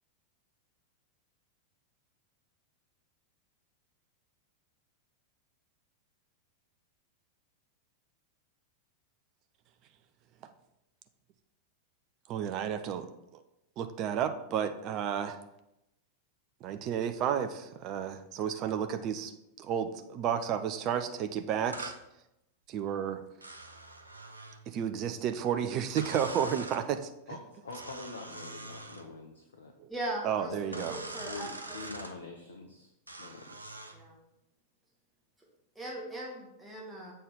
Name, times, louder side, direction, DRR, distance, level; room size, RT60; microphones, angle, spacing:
voice 1, 12.3-13.1 13.8-15.4 16.6-19.3 19.6-21.9 22.7-23.2 24.7-27.1 29.8-29.9 30.2-31.0, right 8 dB, 40° right, 9 dB, 0.6 m, -32 dB
sound 1, 21.7-22.0 23.4-24.6 26.0-26.8 27.7-29.1 30.7-32.1 33.1-34.0, right 2 dB, 80° right, 0.6 m, -43 dB
voice 2, 27.3-29.7 30.5-30.9 31.2-32.9 33.2-33.7, left 3 dB, 65° left, 3 dB, 0.8 m, -45 dB
voice 3, 29.9-31.5 33.9-34.2 35.8-37.1, right 1 dB, 5° right, -4 dB, 1.9 m, -39 dB
7.5 x 4.4 x 5.1 m, 0.87 s
figure-of-eight pair, 90°, 0 cm